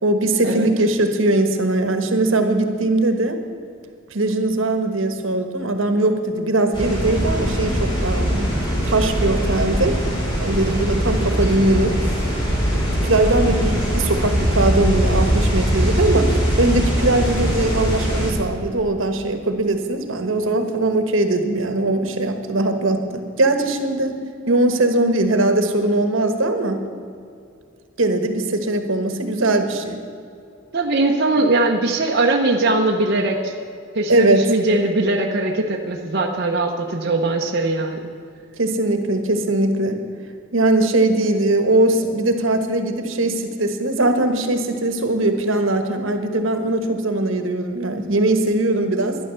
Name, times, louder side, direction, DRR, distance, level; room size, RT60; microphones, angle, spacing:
voice 1, 0.0-3.4 4.1-8.5 8.8-10.0 10.4-12.0 12.7-24.2 24.5-26.8 28.0-30.0 34.1-34.5 38.6-40.0 40.5-49.2, right 2 dB, 75° right, 7 dB, 1.3 m, -20 dB
sound 1, 6.7-18.3, equal, 25° left, 3.9 m, -21 dB
voice 2, 30.7-33.5 33.9-38.0, right 2 dB, 55° right, 0 dB, 0.9 m, -20 dB
12.0 x 10.5 x 6.9 m, 2.4 s
head